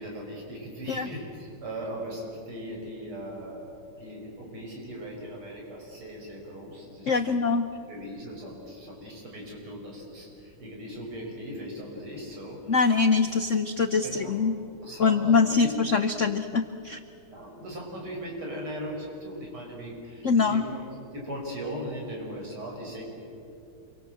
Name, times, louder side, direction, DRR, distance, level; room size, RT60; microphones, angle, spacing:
voice 1, 0.0-7.4 7.9-12.8 14.0-14.4 14.8-15.7 17.3-23.0, equal, 75° right, -1 dB, 6.5 m, -38 dB
voice 2, 7.1-7.7 12.7-14.6 15.0-17.0 20.2-20.6, left 4 dB, 70° left, 10 dB, 0.7 m, -23 dB
27.5 x 23.5 x 7.7 m, 2.7 s
omnidirectional pair, 2.4 m